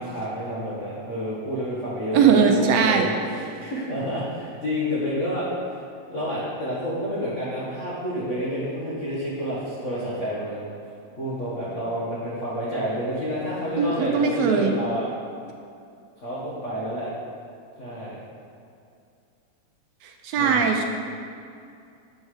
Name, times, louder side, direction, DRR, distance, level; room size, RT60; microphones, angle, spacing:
voice 1, 0.0-5.5 6.1-10.6 11.2-15.0 16.2-17.1 17.8-18.1 20.4-20.7, equal, 80° left, -8 dB, 0.6 m, -29 dB
voice 2, 2.1-3.1 13.8-14.7 20.0-20.8, right 6 dB, 80° right, 3 dB, 1.6 m, -20 dB
7.8 x 5.4 x 4.8 m, 2.4 s
omnidirectional pair, 3.3 m